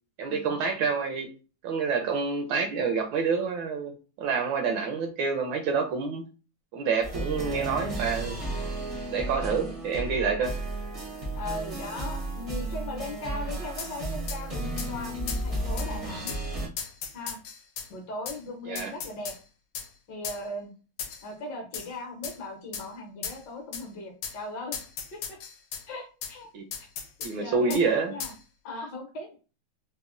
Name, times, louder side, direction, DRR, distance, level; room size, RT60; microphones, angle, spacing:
voice 1, 0.2-1.3 1.6-6.2 6.7-8.4 9.1-10.6 18.7-18.9 26.5-26.7 27.2-28.1, right 5 dB, 75° right, 1.2 m, -28 dB
sound 1, 7.0-16.7, right 1 dB, 50° right, 0.4 m, -33 dB
voice 2, 8.2-8.7 11.4-16.3 17.1-17.4 17.9-19.3 20.1-20.7 21.2-24.7 25.1-25.4 25.9-26.5 27.4-28.3 28.6-29.4, left 2 dB, 60° left, 1.3 m, -38 dB
sound 2, 13.8-13.9 14.3-14.4 14.8-14.9 15.3-15.4 15.8-15.9 16.3-16.4 16.8-17.9 18.3-18.4 18.8-19.4 19.7-19.9 20.2-20.4 21.0-21.3 21.7-21.9 22.2-22.4 22.7-22.9 23.2-23.4 23.7-23.8 24.2-24.4 24.7-25.8 26.2-26.3 26.7-27.3 27.7-27.8 28.2-28.4, left 7 dB, 90° left, 1.5 m, -36 dB
4.0 x 2.1 x 2.4 m
omnidirectional pair, 2.3 m